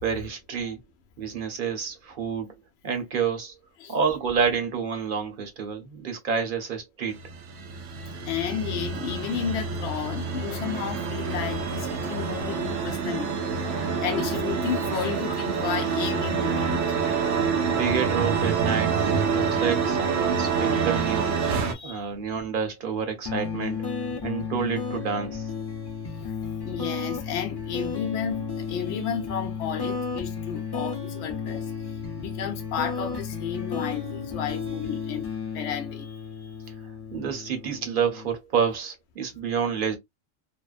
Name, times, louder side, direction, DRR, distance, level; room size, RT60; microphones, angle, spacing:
voice 1, 0.0-0.8 1.2-2.5 2.8-3.5 3.9-7.2 17.7-19.0 19.3-21.4 21.8-23.8 24.2-25.5 37.1-40.0, right 6 dB, 50° right, 0.9 m, -28 dB
sound 1, 7.1-21.7, right 5 dB, 85° right, 0.9 m, -27 dB
voice 2, 8.3-13.7 14.0-16.9 21.7-22.0 26.2-26.3 26.6-31.7 32.2-36.5, left 8 dB, 70° left, 0.9 m, -32 dB
sound 2, 23.2-38.3, left 5 dB, 35° left, 0.4 m, -33 dB
2.6 x 2.1 x 2.3 m
omnidirectional pair, 1.2 m